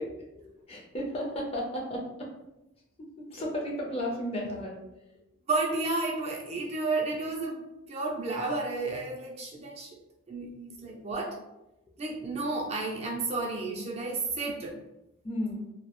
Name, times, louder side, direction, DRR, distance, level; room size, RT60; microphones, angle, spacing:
voice 1, 0.0-2.3 3.0-4.8 15.2-15.7, left 1 dB, 30° left, -2 dB, 0.5 m, -34 dB
voice 2, 5.5-7.6 7.9-9.9 10.3-11.3 12.0-14.7, right 3 dB, 30° right, -1 dB, 0.3 m, -32 dB
2.2 x 2.1 x 2.9 m, 0.93 s
head